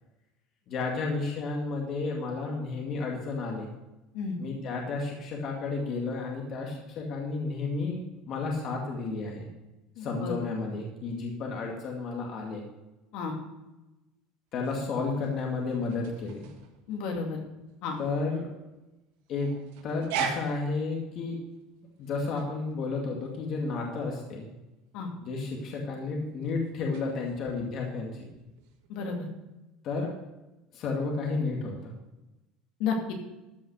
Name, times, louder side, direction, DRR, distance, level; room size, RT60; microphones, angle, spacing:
voice 1, 0.7-3.7 4.4-8.0 8.3-9.5 10.0-12.6 14.5-16.5 18.0-18.5 19.3-19.5 19.8-21.4 22.0-24.5 25.2-28.3 29.8-30.1 30.7-31.9, left 3 dB, 45° left, -1 dB, 2.2 m, -32 dB
voice 2, 10.0-10.4 13.1-13.3 16.9-17.4 17.8-18.0 24.9-25.1 28.9-29.3 32.8-33.1, left 5 dB, 65° left, 1 dB, 2.5 m, -32 dB
sound 1, 14.5-28.9, right 7 dB, 85° right, 1.9 m, -42 dB
13.5 x 5.7 x 6.5 m, 1.0 s
cardioid pair, 140°, 0 cm